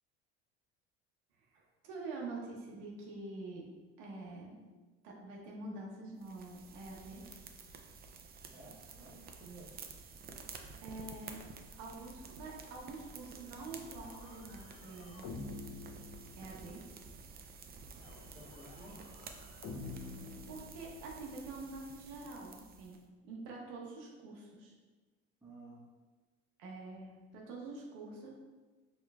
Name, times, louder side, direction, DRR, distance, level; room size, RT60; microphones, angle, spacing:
voice 1, 1.4-3.7 4.0-4.6 5.0-7.2 10.8-15.3 16.4-16.8 20.5-24.8 26.6-28.3, right 3 dB, 75° right, -2 dB, 0.8 m, -46 dB
sound 1, 6.2-23.0, right 5 dB, 30° right, 0.5 m, -51 dB
voice 2, 8.5-9.8 17.9-18.0 18.3-19.0 25.4-25.9, right 2 dB, 10° right, -6 dB, 1.3 m, -54 dB
sound 2, 13.6-16.9 18.0-21.3, left 3 dB, 60° left, 0.7 m, -49 dB
4.5 x 3.0 x 2.3 m, 1.3 s
supercardioid pair, 80°, 30 cm